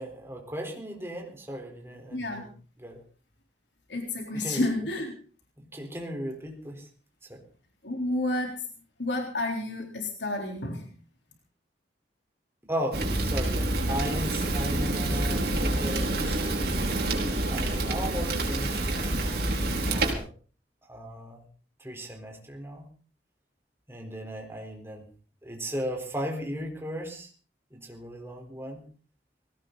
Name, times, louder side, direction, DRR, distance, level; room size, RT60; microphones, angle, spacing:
voice 1, 0.0-2.5 2.8-3.0 4.3-4.9 5.6-6.9 7.3-7.4 12.7-16.8 17.5-20.3 20.9-21.4 21.8-22.9 23.9-25.1 25.4-27.3 27.7-28.8, equal, 15° right, 2 dB, 4.2 m, -36 dB
voice 2, 2.1-2.5 3.9-5.1 7.8-8.6 9.0-10.9, left 2 dB, 80° left, 2 dB, 3.8 m, -30 dB
Fire, 12.9-20.1, right 1 dB, 60° right, 4.6 m, -27 dB
19.5 x 17.5 x 4.0 m, 0.40 s
head